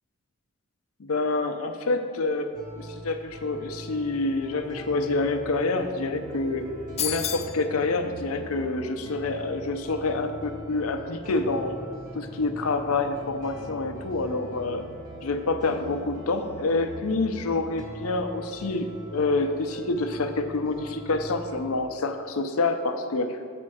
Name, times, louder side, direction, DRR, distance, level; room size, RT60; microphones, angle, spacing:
voice 1, 1.0-2.5 2.8-6.6 7.0-11.7 12.1-14.8 15.2-23.4, left 3 dB, 75° left, 7 dB, 0.6 m, -27 dB
sound 1, 2.5-21.7, right 1 dB, 40° right, 1.8 m, -43 dB
sound 2, 4.3-17.9, equal, 55° left, 0.9 m, -47 dB
sound 3, 7.0-7.6, left 10 dB, 30° left, 0.4 m, -29 dB
7.5 x 4.4 x 6.2 m, 2.1 s
head